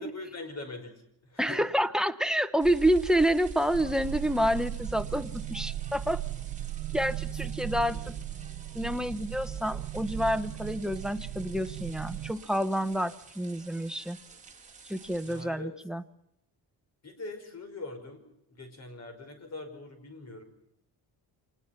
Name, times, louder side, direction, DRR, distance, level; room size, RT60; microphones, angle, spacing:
voice 1, 0.0-1.7 7.7-8.1 15.2-15.7 17.0-18.2 18.5-20.4, left 3 dB, 35° left, 8 dB, 5.2 m, -42 dB
voice 2, 1.4-6.2 6.9-8.0 8.7-14.2 14.9-16.0, equal, ahead, 14 dB, 0.8 m, -28 dB
sound 1, 2.6-15.4, right 5 dB, 15° right, 3.6 m, -44 dB
sound 2, 3.7-12.3, right 15 dB, 70° right, 0.8 m, -38 dB
26.0 x 19.5 x 5.7 m, 0.79 s
cardioid pair, 145°, 42 cm